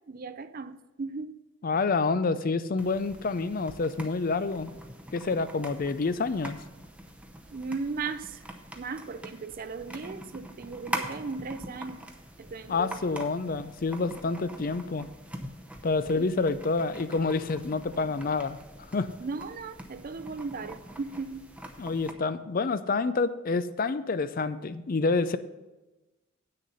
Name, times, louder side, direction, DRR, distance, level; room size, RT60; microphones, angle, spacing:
voice 1, 0.1-1.4 7.5-8.4 8.8-12.0 12.4-13.0 16.0-16.2 19.2-21.5, right 4 dB, 40° right, 12 dB, 0.4 m, -37 dB
voice 2, 1.6-4.7 5.1-6.6 12.7-15.1 15.8-18.6 18.9-19.1 21.8-25.4, left 4 dB, 40° left, 13 dB, 0.4 m, -28 dB
sound 1, 2.8-22.1, right 1 dB, 5° right, 0.7 m, -43 dB
9.2 x 6.5 x 5.5 m, 1.1 s
head